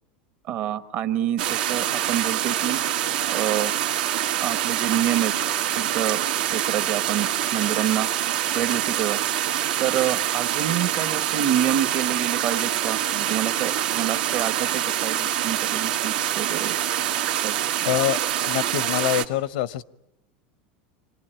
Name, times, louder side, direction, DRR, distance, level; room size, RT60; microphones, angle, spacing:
voice 1, 0.5-2.8 3.3-3.7 4.4-5.3 5.7-6.2 6.5-8.1 8.5-9.2 9.8-16.8 17.4-17.9, right 11 dB, 45° right, 11 dB, 1.2 m, -27 dB
sound 1, 1.4-19.2, right 11 dB, 80° right, 1.6 m, -25 dB
voice 2, 17.9-19.8, left 13 dB, 75° left, 18 dB, 0.8 m, -25 dB
25.5 x 19.5 x 8.9 m, 0.91 s
supercardioid pair, 155°, 5 cm